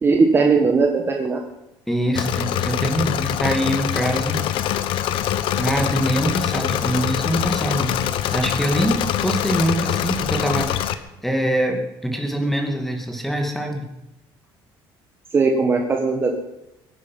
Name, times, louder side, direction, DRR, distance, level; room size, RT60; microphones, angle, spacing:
voice 1, 0.0-1.4 15.3-16.4, right 4 dB, 25° right, 3 dB, 1.5 m, -18 dB
voice 2, 1.9-4.4 5.6-8.0 8.3-13.9, right 1 dB, ahead, 3 dB, 2.3 m, -24 dB
Engine / Mechanisms, 2.2-10.9, left 11 dB, 65° left, 1.0 m, -24 dB
23.0 x 9.8 x 5.6 m, 0.92 s
cardioid pair, 145°, 9 cm